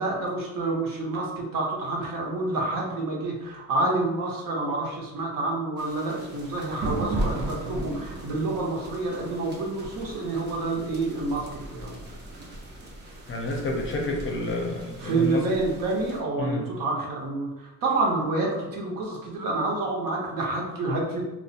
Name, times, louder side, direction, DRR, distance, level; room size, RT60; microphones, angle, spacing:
voice 1, 0.0-12.0 15.0-21.2, right 2 dB, 70° right, -2 dB, 0.8 m, -28 dB
sound 1, 5.8-16.2, right 1 dB, 30° right, 0.5 m, -36 dB
voice 2, 13.3-15.4 16.4-16.6, left 2 dB, 35° left, 0 dB, 0.5 m, -29 dB
2.4 x 2.0 x 2.7 m, 1.0 s
cardioid pair, 110°, 34 cm